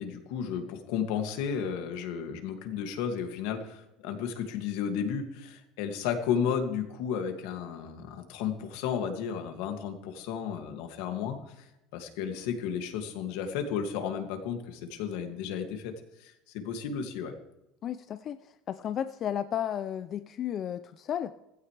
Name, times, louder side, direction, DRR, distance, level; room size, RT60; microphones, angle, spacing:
voice 1, 0.0-17.4, left 7 dB, 70° left, 5 dB, 2.2 m, -33 dB
voice 2, 17.8-21.3, left 10 dB, 30° left, 11 dB, 0.4 m, -33 dB
16.5 x 15.5 x 3.3 m, 0.91 s
cardioid pair, 180°, 0 cm